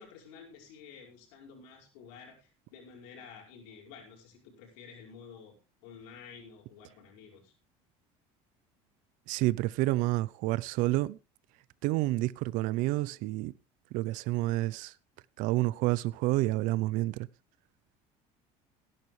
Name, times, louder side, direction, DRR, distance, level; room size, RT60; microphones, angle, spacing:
voice 1, 0.0-5.5 5.8-7.5, left 6 dB, 90° left, 5.4 m, -51 dB
voice 2, 9.3-11.2 11.8-13.5 13.9-14.9 15.4-17.3, right 18 dB, 65° right, 0.6 m, -29 dB
17.5 x 11.0 x 3.2 m
cardioid pair, 140°, 14 cm